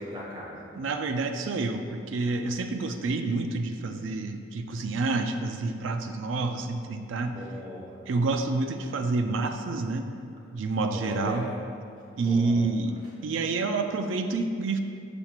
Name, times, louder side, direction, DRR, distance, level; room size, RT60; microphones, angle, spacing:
voice 1, 0.0-0.6 7.2-7.9 10.9-11.4 12.2-12.6, left 1 dB, 20° right, -6 dB, 1.2 m, -38 dB
voice 2, 0.7-7.4 8.1-10.1 10.5-11.5 12.2-13.0 13.2-14.8, right 3 dB, 75° right, 7 dB, 0.4 m, -28 dB
6.9 x 5.8 x 2.4 m, 2.4 s
head